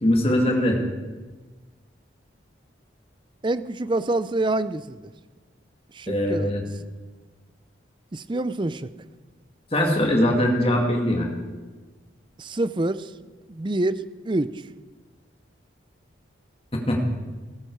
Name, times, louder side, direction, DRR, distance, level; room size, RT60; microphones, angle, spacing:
voice 1, 0.0-0.8 6.1-6.6 9.7-11.3 16.9-17.0, left 1 dB, 30° left, 1 dB, 2.0 m, -21 dB
voice 2, 3.4-5.1 5.9-6.5 8.1-8.9 12.4-13.1 13.5-14.6, right 2 dB, 25° right, 14 dB, 0.5 m, -26 dB
17.5 x 14.0 x 4.7 m, 1.3 s
head